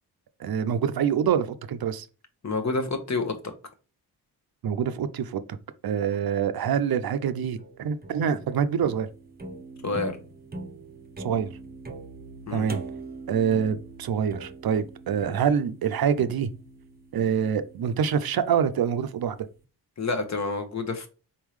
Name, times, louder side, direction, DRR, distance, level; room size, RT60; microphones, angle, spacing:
voice 1, 0.4-2.1 4.6-5.4 5.8-9.1 11.2-11.5 12.5-12.8 13.3-16.5 17.1-19.4, right 7 dB, 60° right, 0.5 m, -25 dB
voice 2, 2.4-3.5 9.8-10.1 12.5-12.7 20.0-21.1, left 3 dB, 40° left, 1.1 m, -28 dB
sound 1, 7.6-18.8, right 2 dB, 20° right, 0.8 m, -42 dB
4.3 x 3.6 x 3.1 m
cardioid pair, 60°, 42 cm